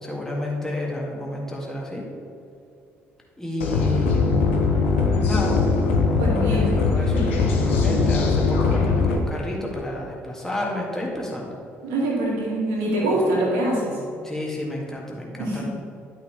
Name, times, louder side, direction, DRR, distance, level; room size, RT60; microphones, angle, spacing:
voice 1, 0.0-2.1 3.4-4.6 5.2-5.6 6.5-11.6 13.0-13.4 14.2-15.6, left 1 dB, 5° left, -3 dB, 2.0 m, -31 dB
sound 1, 3.6-9.2, left 4 dB, 80° left, 0.8 m, -20 dB
voice 2, 6.2-7.4 11.8-14.0 15.4-15.6, right 1 dB, 70° right, -3 dB, 2.1 m, -25 dB
11.5 x 5.7 x 3.5 m, 2.6 s
figure-of-eight pair, 50°, 7 cm